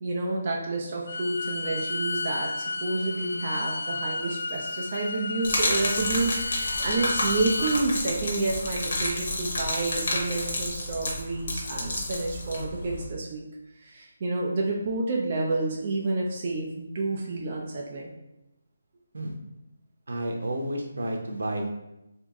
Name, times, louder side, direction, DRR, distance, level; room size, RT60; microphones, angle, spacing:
voice 1, 0.0-13.4 13.8-18.1, right 2 dB, 30° right, -2 dB, 0.4 m, -29 dB
Bowed string instrument, 1.1-7.8, left 3 dB, 75° left, 0.4 m, -32 dB
Gurgling / Liquid, 5.4-13.1, left 1 dB, 45° left, 0.8 m, -30 dB
voice 2, 20.1-21.7, right 1 dB, 80° right, 1 dB, 0.8 m, -31 dB
3.0 x 2.6 x 3.5 m, 0.92 s
hypercardioid pair, 175°, 0 cm